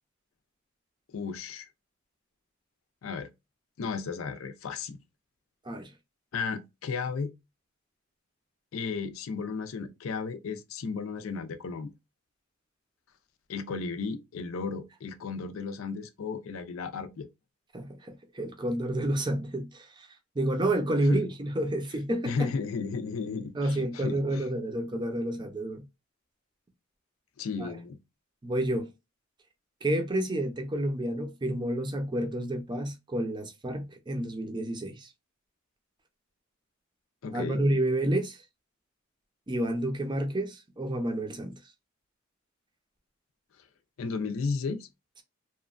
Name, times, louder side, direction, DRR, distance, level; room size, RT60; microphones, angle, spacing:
voice 1, 1.1-1.7 3.0-3.3 3.8-5.0 6.3-7.3 8.7-11.9 13.5-17.3 21.1-21.2 22.3-24.4 27.4-28.0 37.2-37.6 44.0-44.9, left 5 dB, 85° left, 0.4 m, -34 dB
voice 2, 17.7-20.1 20.3-22.5 23.5-25.8 27.6-27.8 28.4-28.9 29.8-35.1 37.3-38.4 39.5-41.5, right 1 dB, 25° right, 0.5 m, -30 dB
2.9 x 2.2 x 2.4 m
head